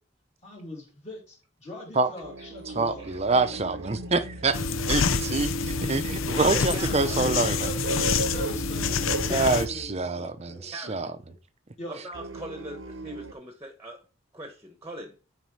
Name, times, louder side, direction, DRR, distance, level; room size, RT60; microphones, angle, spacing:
voice 1, 0.4-3.0 5.8-5.9 6.3-6.4 7.1-7.2 7.6-10.7 11.8-12.0, left 1 dB, 35° left, 2.7 m, -42 dB
sound 1, 2.2-4.7 6.9-10.0 12.1-13.3, right 2 dB, 70° right, 0.9 m, -37 dB
voice 2, 2.8-4.6 4.9-7.7 9.3-11.1, right 3 dB, 30° right, 0.6 m, -26 dB
sound 2, 4.5-9.7, left 4 dB, 85° left, 0.7 m, -27 dB
voice 3, 6.5-7.1 9.3-9.6 10.7-11.0 11.9-14.0 14.3-15.1, right 1 dB, 15° right, 1.1 m, -40 dB
9.6 x 4.2 x 4.7 m
head